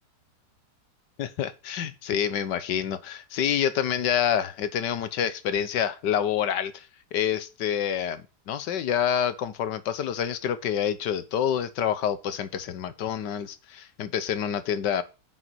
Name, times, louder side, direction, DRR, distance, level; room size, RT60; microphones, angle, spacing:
voice 1, 1.2-15.0, left 9 dB, 80° left, 1.6 m, -27 dB
9.3 x 6.0 x 6.2 m
omnidirectional pair, 1.9 m